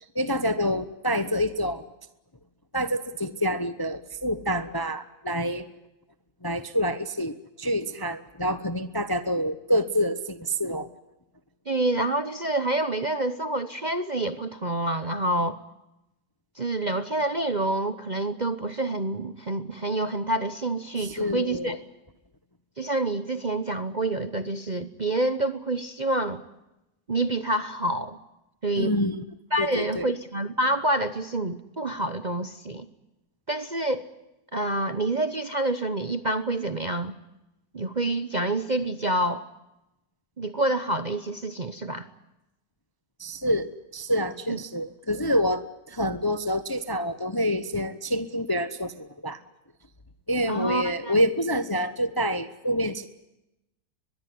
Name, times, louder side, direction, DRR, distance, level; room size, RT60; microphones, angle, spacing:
voice 1, 0.0-1.8 2.7-5.7 6.4-10.9 21.0-21.8 28.8-29.2 29.6-30.1 43.2-49.4 50.3-53.1, equal, 20° left, 12 dB, 0.7 m, -27 dB
voice 2, 11.7-15.6 16.6-21.8 22.8-26.4 27.1-28.2 28.6-28.9 29.5-32.9 33.5-34.1 34.5-37.1 37.7-39.4 40.4-42.1 44.5-44.6 50.5-51.2, right 2 dB, 35° right, 11 dB, 0.8 m, -27 dB
23.5 x 21.5 x 9.5 m, 0.93 s
omnidirectional pair, 1.9 m